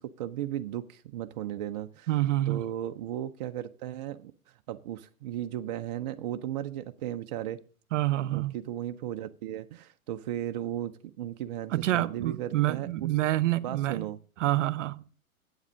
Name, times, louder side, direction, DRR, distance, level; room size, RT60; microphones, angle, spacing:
voice 1, 0.0-2.1 2.5-4.3 4.7-7.6 8.1-13.1 13.6-14.2, right 12 dB, 30° right, 0.4 m, -36 dB
voice 2, 2.1-2.6 7.9-8.5 11.7-14.1 14.4-15.0, right 15 dB, 60° right, 0.8 m, -27 dB
8.3 x 7.2 x 6.2 m
hypercardioid pair, 115°, 42 cm